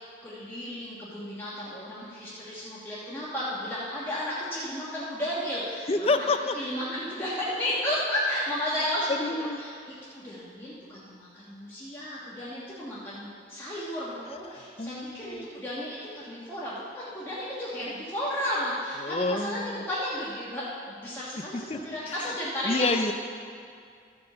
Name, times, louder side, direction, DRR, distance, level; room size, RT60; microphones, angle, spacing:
voice 1, 0.0-6.3 6.5-23.1, left 1 dB, 15° left, -9 dB, 1.4 m, -33 dB
voice 2, 5.9-6.6 9.1-9.6 14.8-15.5 19.0-19.8 21.5-22.3 22.6-23.1, left 3 dB, 35° left, 8 dB, 0.5 m, -28 dB
14.0 x 5.2 x 6.8 m, 2.3 s
head